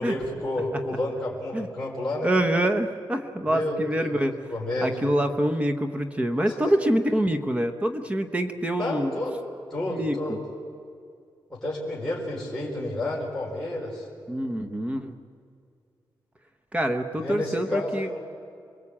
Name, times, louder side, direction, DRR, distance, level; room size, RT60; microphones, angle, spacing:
voice 1, 0.0-2.3 3.5-4.2 4.5-5.1 6.5-6.6 8.8-9.4 9.7-10.4 11.5-14.1 17.2-18.2, left 1 dB, 5° left, -6 dB, 4.5 m, -30 dB
voice 2, 2.2-4.3 4.8-9.1 9.8-10.4 14.3-15.1 16.7-18.1, right 1 dB, 15° right, 6 dB, 1.0 m, -26 dB
28.5 x 21.5 x 8.7 m, 2.3 s
wide cardioid pair, 165°, 8 cm